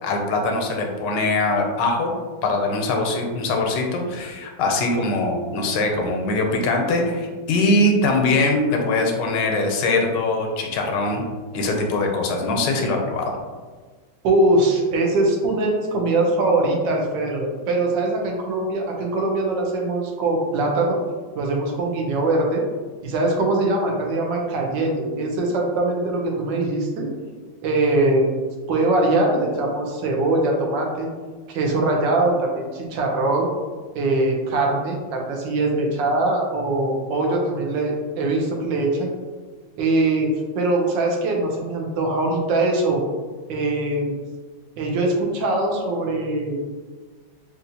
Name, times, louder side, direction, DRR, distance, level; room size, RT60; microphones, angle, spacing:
voice 1, 0.0-2.1 2.4-11.2 11.5-13.3, left 2 dB, 85° left, 2 dB, 1.3 m, -22 dB
voice 2, 14.2-21.0 21.3-22.6 23.0-27.1 27.6-28.3 28.7-31.1 31.5-33.5 33.9-39.1 39.8-43.0 43.5-44.2 44.8-46.6, right 2 dB, 90° right, 0 dB, 1.4 m, -22 dB
4.1 x 2.5 x 2.7 m, 1.4 s
omnidirectional pair, 1.9 m